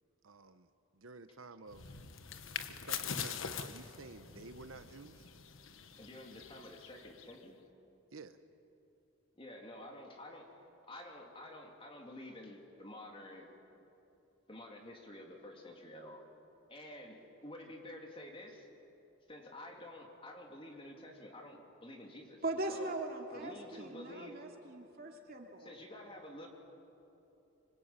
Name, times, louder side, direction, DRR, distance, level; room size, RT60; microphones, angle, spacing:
voice 1, 0.2-1.9 2.7-5.3 8.1-8.4, right 3 dB, 80° right, 10 dB, 1.0 m, -52 dB
sound 1, 1.7-7.4, left 7 dB, 75° left, 1.3 m, -44 dB
voice 2, 6.0-7.6 9.4-10.6 10.9-13.5 14.5-16.2 16.7-18.7 19.3-22.4 22.7-22.9 23.3-24.4 25.6-26.5, left 1 dB, 25° left, 1 dB, 3.2 m, -50 dB
voice 3, 22.4-25.8, right 2 dB, 45° right, 2 dB, 2.9 m, -40 dB
25.5 x 25.0 x 9.0 m, 2.9 s
head